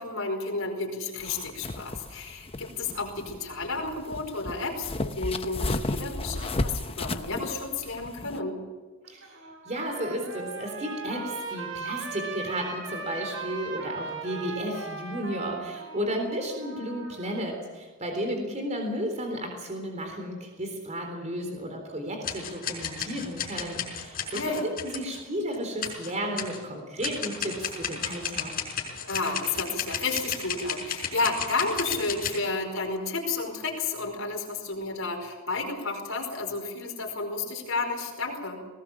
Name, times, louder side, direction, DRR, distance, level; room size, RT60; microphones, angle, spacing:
voice 1, 0.0-8.6 24.3-24.6 29.1-38.6, left 3 dB, 75° left, 2 dB, 5.0 m, -31 dB
sound 1, 1.2-8.4, left 2 dB, 30° left, 0.8 m, -34 dB
Trumpet, 9.0-17.5, right 3 dB, 65° right, 4.7 m, -38 dB
voice 2, 9.7-28.5, equal, 35° right, 3 dB, 3.8 m, -33 dB
sound 2, 22.2-25.2 25.5-25.6 25.8-26.6 27.0-32.4, left 7 dB, 45° left, 5.4 m, -33 dB
20.0 x 18.5 x 7.4 m, 1.3 s
head